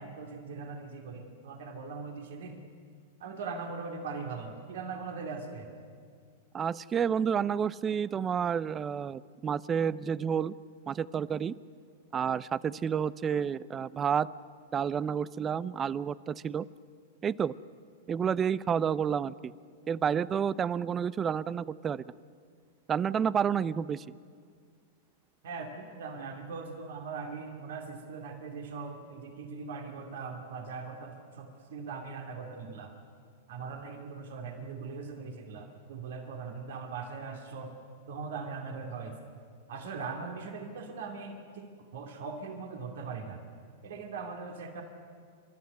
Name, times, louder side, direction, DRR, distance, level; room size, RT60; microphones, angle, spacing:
voice 1, 0.0-2.6 3.2-5.7 25.4-33.0 33.5-37.8 38.1-39.2 39.7-43.4 43.8-44.8, right 4 dB, 70° right, 4 dB, 2.6 m, -40 dB
voice 2, 6.5-10.5 10.9-11.5 12.1-14.3 14.7-16.7 17.2-17.5 18.1-19.5 19.9-22.0 22.9-24.2, right 7 dB, 25° right, 20 dB, 0.6 m, -30 dB
29.0 x 12.5 x 9.6 m, 2.1 s
hypercardioid pair, 110°, 0 cm